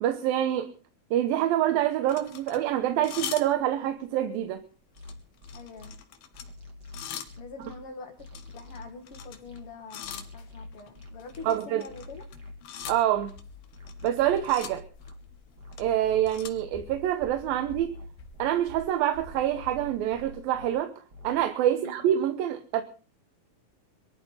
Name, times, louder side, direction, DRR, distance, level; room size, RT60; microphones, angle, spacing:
voice 1, 0.0-0.7 1.1-4.6 11.4-11.8 12.9-13.3 14.0-14.8 15.8-18.0 18.4-20.9 21.2-22.8, right 11 dB, 80° right, 2.7 m, -26 dB
sound 1, 2.1-4.0 4.4-4.6 5.0-7.5 8.1-9.6 9.9-20.4, left 8 dB, 80° left, 3.3 m, -44 dB
sound 2, 5.0-5.9 6.3-7.8 8.2-9.6 10.0-11.4 11.9-13.3 13.7-15.1 15.6-17.0 17.4-18.8 19.3-20.7 21.1-21.4, left 3 dB, 30° right, 2.8 m, -46 dB
voice 2, 5.5-5.9 7.4-8.3 8.5-12.2 21.7-22.1, left 4 dB, 40° left, 2.8 m, -44 dB
23.0 x 14.0 x 4.0 m
omnidirectional pair, 4.2 m